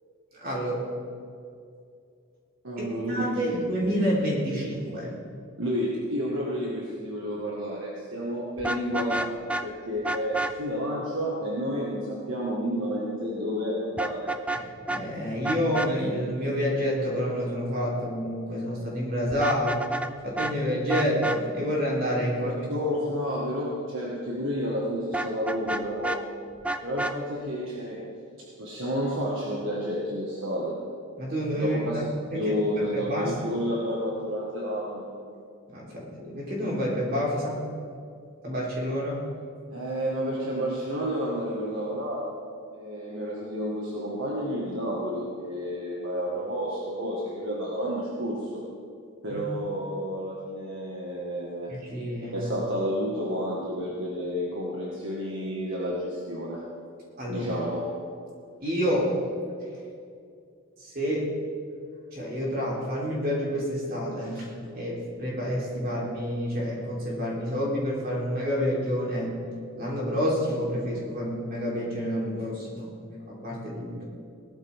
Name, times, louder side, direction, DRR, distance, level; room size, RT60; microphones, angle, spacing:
voice 1, 0.3-0.9 2.8-5.1 14.5-19.8 20.2-22.7 31.2-32.0 32.3-33.6 35.7-37.6 38.4-39.2 49.3-49.4 51.7-52.4 57.2-57.5 58.6-59.1 60.8-61.3 62.1-69.4 69.7-72.9 73.3-74.0, equal, 45° right, -5 dB, 3.8 m, -29 dB
voice 2, 2.6-3.6 5.6-14.3 22.4-26.2 26.8-28.1 28.6-30.8 31.6-32.1 32.3-35.1 39.7-42.3 42.7-48.6 49.2-51.8 52.3-56.7 57.3-57.9, equal, 60° right, -4 dB, 1.9 m, -30 dB
Vehicle horn car horn honking, 8.6-9.7 10.0-10.5 14.0-14.6 14.9-15.0 15.4-15.9 19.3-20.1 20.4-20.5 20.9-21.4 25.1-26.2 26.6-27.2, right 2 dB, 5° right, 0.3 m, -29 dB
18.0 x 12.5 x 3.7 m, 2.3 s
head